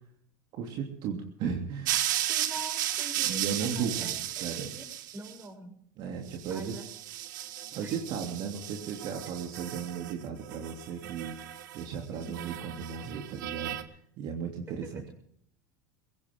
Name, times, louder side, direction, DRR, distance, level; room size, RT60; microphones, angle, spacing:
voice 1, 0.5-2.0 3.2-4.7 6.0-6.8 7.7-11.4 11.7-13.8 14.2-15.1, right 6 dB, 50° right, 1 dB, 3.0 m, -35 dB
sound 1, 1.8-5.3 6.3-10.1 10.4-11.9 12.2-13.8, right 13 dB, 85° right, 1.7 m, -35 dB
voice 2, 2.3-4.9 5.1-5.8 6.5-6.8 7.8-7.9 12.1-12.4 14.7-14.8, right 2 dB, 20° right, 4 dB, 6.6 m, -45 dB
21.5 x 17.5 x 3.8 m, 0.67 s
supercardioid pair, 120°, 10 cm